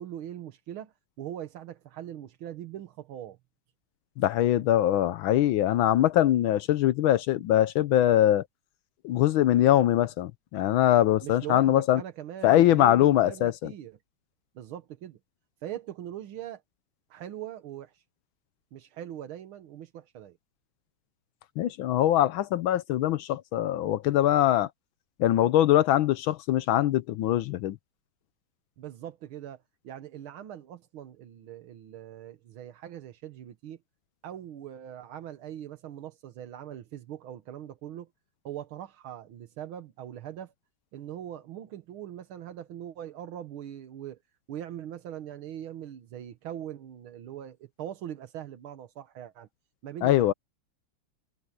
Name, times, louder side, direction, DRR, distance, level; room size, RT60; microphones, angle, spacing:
voice 1, 0.0-3.4 11.2-14.0 14.6-15.2 15.6-16.6 17.1-18.0 18.7-20.4 28.8-33.8 34.2-38.1 38.4-40.5 40.9-44.2 44.5-49.5 49.8-50.3, right 11 dB, 85° right, 2.0 m, -41 dB
voice 2, 4.2-8.4 9.0-12.0 12.4-13.7 21.6-24.7 25.2-27.8 50.0-50.3, left 12 dB, 80° left, 1.5 m, -22 dB
omnidirectional pair, 2.2 m